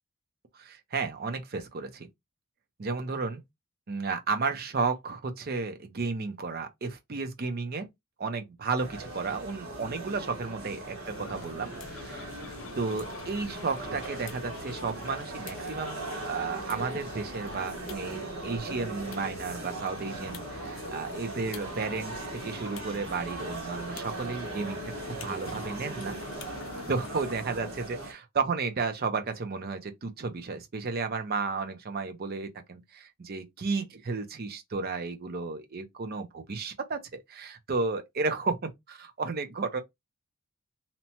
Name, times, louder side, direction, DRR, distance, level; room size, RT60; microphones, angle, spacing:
voice 1, 0.5-2.1 2.8-3.4 3.9-7.9 8.2-26.2 26.9-39.8, right 4 dB, 45° right, 0.5 m, -33 dB
sound 1, 8.8-28.1, right 2 dB, 70° right, 1.5 m, -39 dB
sound 2, 11.1-27.3, left 5 dB, 65° left, 0.5 m, -46 dB
2.8 x 2.1 x 2.8 m
head